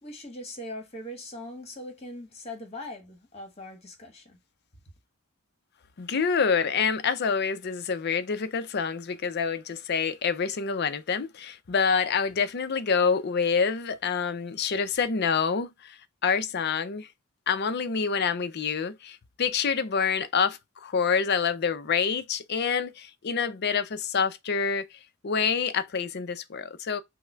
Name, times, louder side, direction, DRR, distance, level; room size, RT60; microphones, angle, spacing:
voice 1, 0.0-4.4, left 1 dB, 30° left, 1.6 m, -41 dB
voice 2, 6.0-17.1 17.5-24.9 25.2-27.0, left 6 dB, 50° left, 0.5 m, -27 dB
5.7 x 2.1 x 3.3 m
head